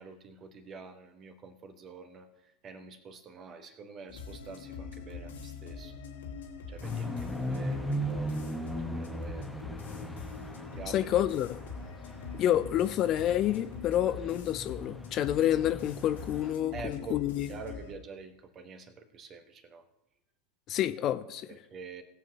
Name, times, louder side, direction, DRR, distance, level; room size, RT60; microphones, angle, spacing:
voice 1, 0.0-6.0 6.7-9.5 10.7-11.1 16.7-17.2 17.5-19.8 21.5-22.0, right 4 dB, 30° right, 8 dB, 1.3 m, -46 dB
sound 1, 4.1-17.9, left 4 dB, 65° left, 1.6 m, -44 dB
sound 2, 6.8-16.5, equal, ahead, 1.1 m, -38 dB
voice 2, 10.9-11.6 12.3-17.5 20.7-21.5, left 11 dB, 35° left, 11 dB, 0.5 m, -28 dB
19.5 x 7.5 x 2.9 m, 0.86 s
figure-of-eight pair, 85°, 0 cm